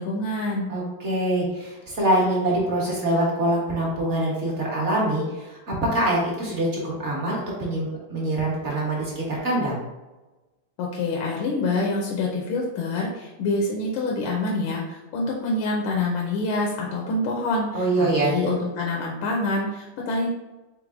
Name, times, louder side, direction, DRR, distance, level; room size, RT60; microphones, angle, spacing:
voice 1, 0.0-0.7 10.8-20.3, left 2 dB, 85° left, -1 dB, 1.5 m, -26 dB
voice 2, 0.7-5.6 5.9-9.8 17.7-18.3, right 1 dB, 40° right, -4 dB, 1.2 m, -24 dB
4.6 x 3.8 x 2.5 m, 1.1 s
omnidirectional pair, 2.3 m